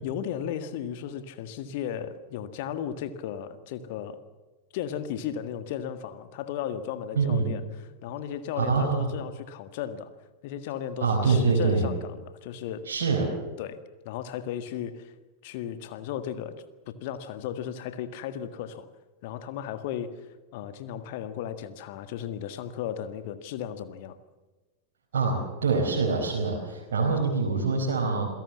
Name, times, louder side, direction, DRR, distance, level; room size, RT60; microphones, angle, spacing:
voice 1, 0.0-4.2 4.7-10.1 10.4-12.9 13.6-15.1 15.4-18.9 19.2-24.2, left 9 dB, 50° left, 10 dB, 1.7 m, -35 dB
voice 2, 7.1-7.5 8.6-9.1 11.0-11.9 12.9-13.3 25.1-28.3, right 4 dB, 60° right, -2 dB, 4.7 m, -25 dB
27.5 x 17.5 x 7.2 m, 1.2 s
figure-of-eight pair, 90°, 0 cm